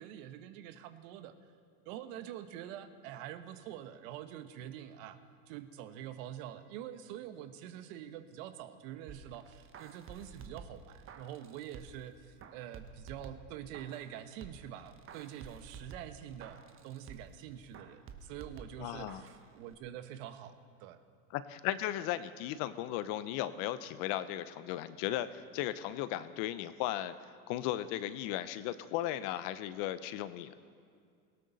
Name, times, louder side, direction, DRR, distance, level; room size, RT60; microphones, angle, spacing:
voice 1, 0.0-1.3 1.8-5.2 5.5-21.0, right 11 dB, 55° right, 9 dB, 1.3 m, -46 dB
sound 1, 9.1-12.1 12.4-14.1 14.4-17.4 17.7-19.4 19.7-19.8, right 5 dB, 25° right, 1.2 m, -51 dB
voice 2, 18.8-19.2 21.3-27.2 27.5-30.5, left 13 dB, 50° left, 14 dB, 0.8 m, -36 dB
18.5 x 17.5 x 4.1 m, 2.2 s
hypercardioid pair, 110°, 46 cm